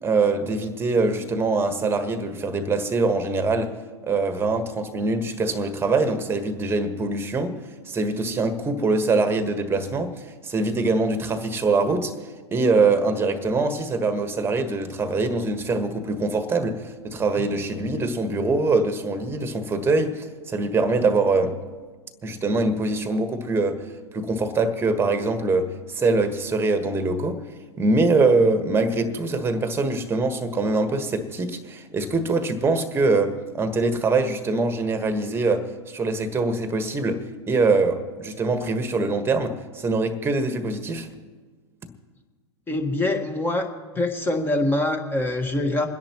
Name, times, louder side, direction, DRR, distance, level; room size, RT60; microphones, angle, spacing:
voice 1, 0.0-3.8 4.0-7.6 7.9-12.1 12.5-21.6 22.2-23.9 24.1-27.4 27.8-41.1, right 3 dB, 15° right, 1.4 m, -23 dB
voice 2, 42.7-43.7 43.9-45.9, left 2 dB, 15° left, 1.5 m, -24 dB
28.5 x 10.5 x 3.0 m
hypercardioid pair, 95°, 15 cm